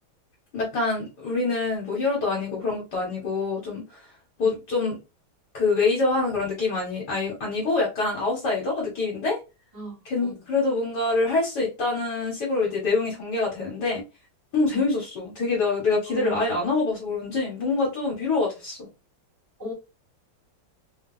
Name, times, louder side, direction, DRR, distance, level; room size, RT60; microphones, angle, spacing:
voice 1, 0.5-4.0 4.4-5.0 5.5-9.4 10.0-14.0 14.5-18.9, left 3 dB, 60° left, 1.5 m, -25 dB
voice 2, 9.7-10.3 14.7-14.8 16.1-16.4 19.6-19.7, equal, 10° right, 1.1 m, -36 dB
3.5 x 2.3 x 2.3 m
omnidirectional pair, 2.1 m